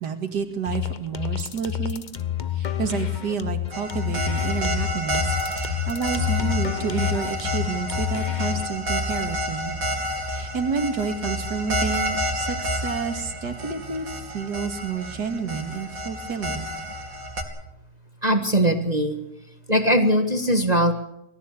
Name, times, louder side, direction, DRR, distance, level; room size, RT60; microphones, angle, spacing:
voice 1, 0.0-2.0 2.5-9.8 10.3-16.7, right 5 dB, 75° right, 5 dB, 2.7 m, -30 dB
sound 1, 0.6-8.7, left 11 dB, 35° left, 0.8 m, -28 dB
sound 2, 3.7-17.4, equal, 55° right, 3.4 m, -30 dB
voice 2, 18.2-19.2 19.7-20.9, equal, 25° right, 6 dB, 1.6 m, -20 dB
25.0 x 15.0 x 8.3 m, 0.80 s
omnidirectional pair, 1.8 m